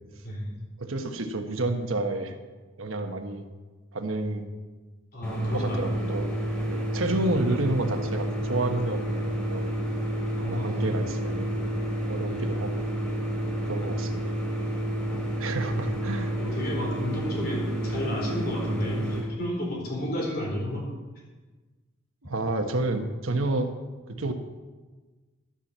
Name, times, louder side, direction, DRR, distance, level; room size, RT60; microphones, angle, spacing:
voice 1, 0.8-2.3 2.8-3.4 3.9-4.4 5.5-6.3 6.7-9.7 10.5-11.6 12.1-12.8 13.4-14.3 15.4-16.3 22.3-23.7 24.1-24.3, right 2 dB, 85° right, 6 dB, 1.1 m, -30 dB
voice 2, 5.1-5.9 10.3-10.9 12.3-12.4 15.0-15.3 15.7-15.8 16.4-20.8, left 1 dB, 50° left, -2 dB, 3.9 m, -32 dB
sound 1, 5.2-19.2, right 1 dB, 5° left, 2.8 m, -30 dB
13.0 x 5.8 x 7.2 m, 1.3 s
head